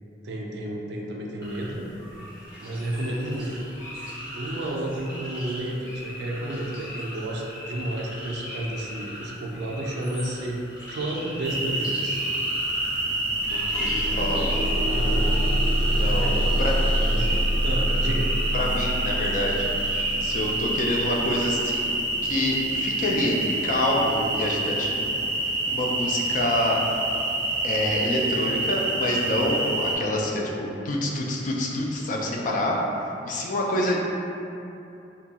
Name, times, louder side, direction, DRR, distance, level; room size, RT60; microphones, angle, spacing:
voice 1, 0.2-1.9 2.6-3.5 4.3-10.6 10.9-12.2 14.9-15.2 16.2-16.7 17.0-17.3 17.6-18.3, right 1 dB, 65° right, -1 dB, 0.4 m, -31 dB
sound 1, 1.4-20.6, left 1 dB, 20° left, 0.9 m, -39 dB
sound 2, 11.4-30.0, right 2 dB, 15° right, 0.6 m, -27 dB
sound 3, 12.7-12.8 13.1-24.1 24.9-25.0 25.5-25.6, equal, 65° left, 1.5 m, -27 dB
voice 2, 13.0-14.4 15.9-16.3 16.6-16.7 18.5-19.7 20.2-21.9 22.2-25.1 25.7-26.8 27.6-32.8 33.2-34.0, left 1 dB, 45° left, -2 dB, 0.3 m, -27 dB
2.8 x 2.2 x 2.7 m, 2.7 s
head